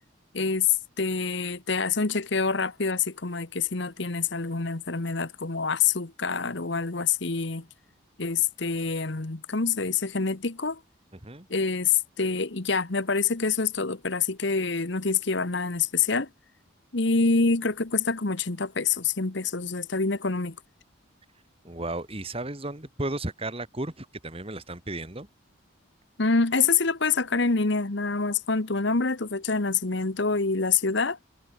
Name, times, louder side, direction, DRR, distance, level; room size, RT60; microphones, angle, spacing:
voice 1, 0.3-0.7 1.0-7.6 8.2-10.8 11.5-16.3 16.9-20.6 26.2-31.2, left 4 dB, 60° left, 1.2 m, -26 dB
voice 2, 21.6-25.3, right 2 dB, 25° right, 2.2 m, -34 dB
head